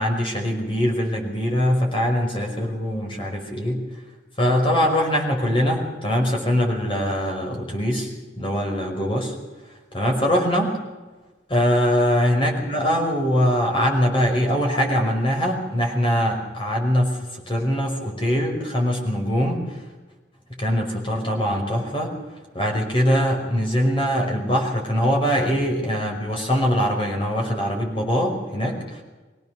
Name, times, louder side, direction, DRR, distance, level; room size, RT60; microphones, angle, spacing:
voice 1, 0.0-3.8 4.4-8.1 8.4-9.3 9.9-10.8 11.5-19.8 20.5-22.1 22.5-29.0, equal, 30° left, 1 dB, 5.4 m, -22 dB
23.5 x 17.5 x 6.6 m, 1.2 s
head